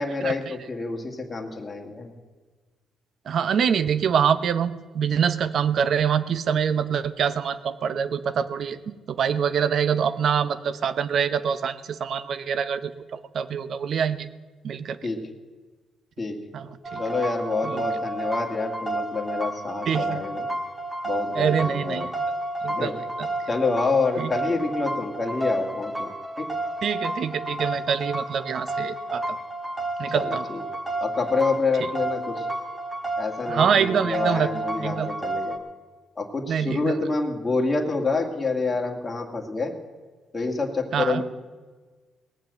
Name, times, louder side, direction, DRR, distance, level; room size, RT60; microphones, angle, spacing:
voice 1, 0.0-2.1 15.0-15.3 16.2-16.4 17.0-20.5 21.0-22.1 22.7-23.0 23.5-26.5 30.1-30.6 31.0-32.5 33.2-35.6 36.2-39.7 40.3-41.2, left 3 dB, 25° left, 1 dB, 2.0 m, -27 dB
voice 2, 3.3-8.8 9.1-14.3 14.6-15.0 16.5-17.0 17.6-17.8 19.9-20.2 21.4-22.1 22.6-22.9 23.2-23.3 24.2-24.3 26.8-29.2 30.0-30.4 33.5-34.5 34.8-35.1 36.5-37.0 40.9-41.2, right 7 dB, 60° right, 14 dB, 0.8 m, -25 dB
sound 1, 16.8-35.6, right 1 dB, 10° right, 1.9 m, -31 dB
18.5 x 7.6 x 7.8 m, 1.4 s
cardioid pair, 90°, 0 cm